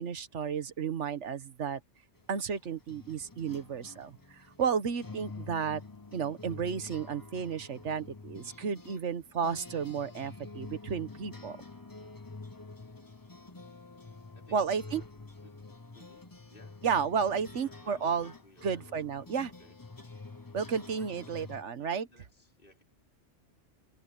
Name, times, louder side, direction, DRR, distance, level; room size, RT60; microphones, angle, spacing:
voice 1, 0.0-1.8 2.3-5.8 6.1-11.6 14.5-15.0 16.8-18.3 18.6-19.5 20.5-22.1, right 6 dB, 80° right, 1.4 m, -32 dB
sound 1, 2.2-21.6, left 3 dB, 20° left, 0.9 m, -48 dB
voice 2, 15.9-16.8 17.3-19.3 19.6-19.7 21.0-22.8, left 2 dB, 45° left, 5.1 m, -61 dB
omnidirectional pair, 1.2 m